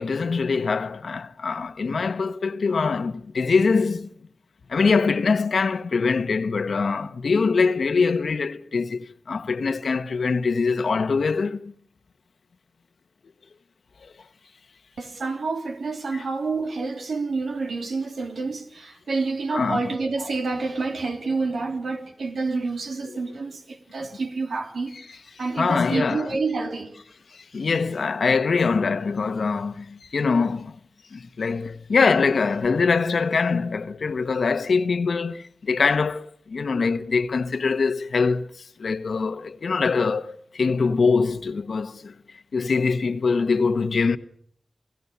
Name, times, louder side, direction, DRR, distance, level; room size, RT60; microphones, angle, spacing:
voice 1, 0.0-4.1 4.7-11.7 14.0-14.1 16.1-16.2 19.5-19.8 25.6-26.3 27.3-30.8 31.1-38.5 38.8-42.1 42.5-44.2, left 4 dB, 80° left, 1.2 m, -23 dB
voice 2, 15.0-24.9 25.4-26.9, right 3 dB, 90° right, 3.3 m, -28 dB
29.0 x 16.0 x 6.9 m
cardioid pair, 55°, 0 cm